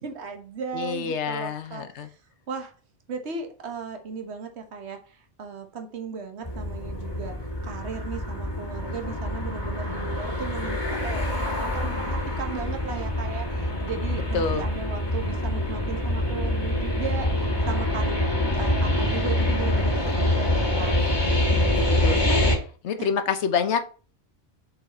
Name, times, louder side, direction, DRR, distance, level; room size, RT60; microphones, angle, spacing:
voice 1, 0.0-2.1 2.5-2.7 3.1-7.4 7.6-17.3 17.7-18.2 18.5-20.9 23.0-23.1, right 5 dB, 70° right, 5 dB, 1.4 m, -36 dB
voice 2, 0.7-2.1 14.3-14.6 21.7-22.4 22.8-23.8, left 6 dB, 75° left, 9 dB, 1.1 m, -27 dB
sound 1, 6.4-22.6, left 1 dB, 20° left, 1.4 m, -25 dB
6.8 x 4.0 x 4.2 m, 0.38 s
omnidirectional pair, 1.2 m